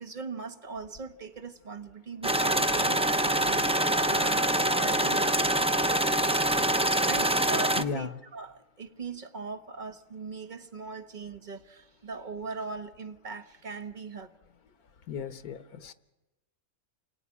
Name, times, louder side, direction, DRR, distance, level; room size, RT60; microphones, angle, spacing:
voice 1, 0.0-5.3 7.0-14.3, right 4 dB, 35° right, 1.4 m, -40 dB
sound 1, 2.2-7.8, right 1 dB, 5° right, 0.4 m, -25 dB
voice 2, 7.8-8.2 15.1-15.9, left 6 dB, 85° left, 1.6 m, -35 dB
29.0 x 19.5 x 9.8 m
omnidirectional pair, 1.5 m